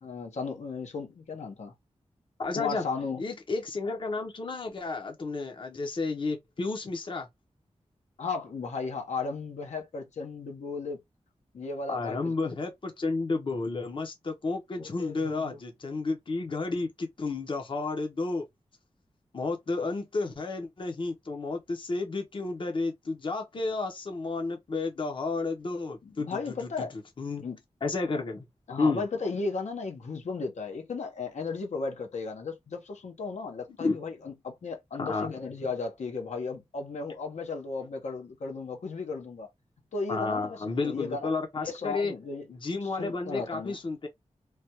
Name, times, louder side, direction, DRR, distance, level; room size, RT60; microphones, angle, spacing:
voice 1, 0.0-1.7 2.5-3.2 8.2-11.0 11.5-12.5 14.8-15.6 26.0-26.9 27.4-27.6 28.7-39.5 39.9-41.3 41.6-42.5 43.0-43.8, left 4 dB, 80° left, 0.8 m, -35 dB
voice 2, 2.4-2.8 3.2-7.3 11.9-18.5 19.3-26.9 27.2-27.5 27.8-28.4 28.8-29.0 33.8-34.0 35.0-35.3 40.1-42.1 42.5-44.1, left 3 dB, 45° left, 0.7 m, -31 dB
3.2 x 2.2 x 2.8 m
wide cardioid pair, 125°, 12 cm